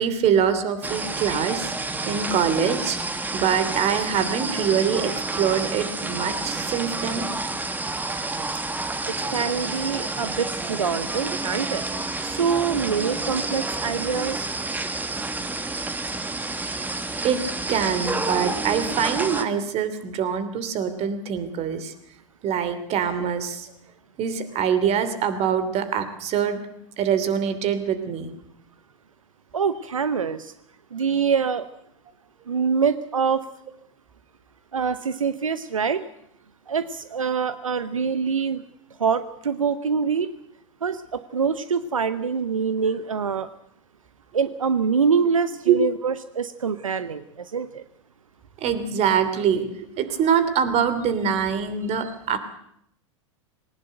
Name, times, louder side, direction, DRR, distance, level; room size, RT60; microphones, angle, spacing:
voice 1, 0.0-1.7 2.1-3.0 3.3-5.1 5.4-7.3 17.2-17.4 17.7-21.9 22.4-23.7 24.2-26.6 27.0-28.3 45.7-45.8 48.6-52.4, right 7 dB, 40° right, 11 dB, 2.9 m, -24 dB
sound 1, 0.8-19.5, right 2 dB, 10° right, 1.6 m, -29 dB
voice 2, 9.1-11.8 12.2-14.5 16.8-16.9 29.5-30.5 30.9-31.7 32.5-33.4 34.7-36.0 36.7-38.6 39.0-40.3 40.8-43.5 44.3-47.8 52.0-52.1, right 6 dB, 90° right, 13 dB, 0.9 m, -25 dB
20.0 x 18.5 x 7.9 m, 0.72 s
hypercardioid pair, 95°, 17 cm